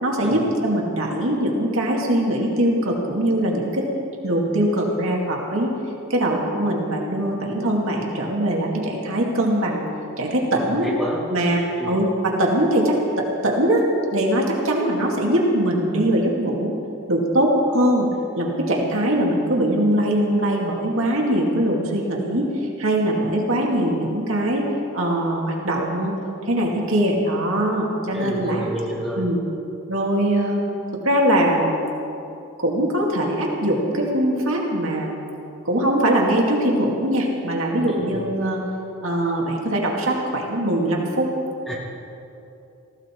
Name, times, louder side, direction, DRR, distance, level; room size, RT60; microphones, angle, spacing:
voice 1, 0.0-3.9 4.2-5.7 6.1-9.8 10.2-10.9 11.3-13.8 14.1-16.7 17.1-18.1 18.4-24.7 24.9-26.1 26.4-28.6 29.2-29.4 29.9-30.6 31.0-31.8 32.6-35.1 35.6-38.6 39.0-41.3, right 1 dB, 65° right, -1 dB, 2.4 m, -21 dB
voice 2, 10.5-11.2 11.8-12.0 28.1-29.3 37.8-38.2 41.7-41.8, equal, ahead, -6 dB, 3.2 m, -30 dB
19.0 x 16.0 x 4.6 m, 2.8 s
head